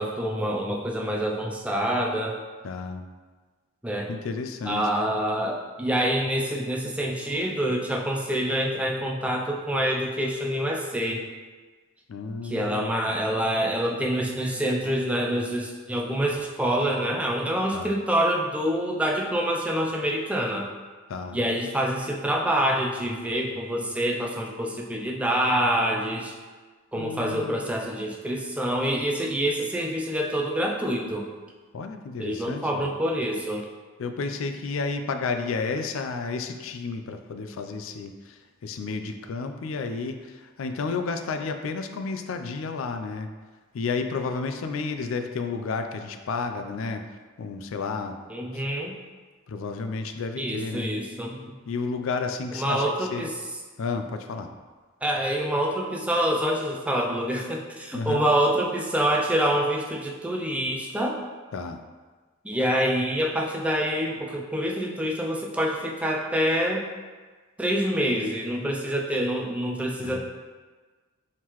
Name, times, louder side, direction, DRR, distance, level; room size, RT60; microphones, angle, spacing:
voice 1, 0.0-2.4 3.8-4.1 4.6-11.3 12.4-20.7 21.3-26.3 26.9-31.3 32.2-33.7 48.3-49.0 50.4-51.4 52.5-53.3 55.0-61.2 62.4-66.8 67.6-70.2, equal, 5° right, -1 dB, 0.4 m, -26 dB
voice 2, 2.6-3.0 4.1-4.9 12.1-13.1 17.7-17.9 21.1-21.4 26.9-27.6 31.7-32.8 34.0-43.3 43.7-47.1 47.4-48.2 48.5-48.6 49.5-50.9 51.7-53.3 53.8-54.5 57.9-58.3 61.5-61.8 70.0-70.2, left 4 dB, 65° left, 7 dB, 0.4 m, -31 dB
4.5 x 3.7 x 3.0 m, 1.4 s
head